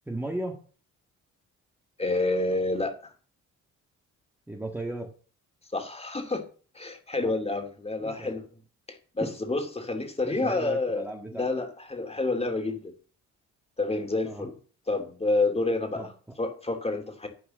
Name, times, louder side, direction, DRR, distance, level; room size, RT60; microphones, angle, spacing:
voice 1, 0.1-0.6 4.5-5.1 7.2-7.3 8.0-8.4 9.2-9.4 10.2-11.5 14.2-14.5 15.9-16.4, right 1 dB, 5° right, 1 dB, 1.6 m, -36 dB
voice 2, 2.0-2.9 5.7-6.4 6.7-8.4 9.1-11.0 11.3-12.9 13.8-14.5 14.9-16.1 16.4-17.3, left 2 dB, 20° left, 5 dB, 2.7 m, -28 dB
11.0 x 4.7 x 7.6 m, 0.40 s
cardioid pair, 90°, 30 cm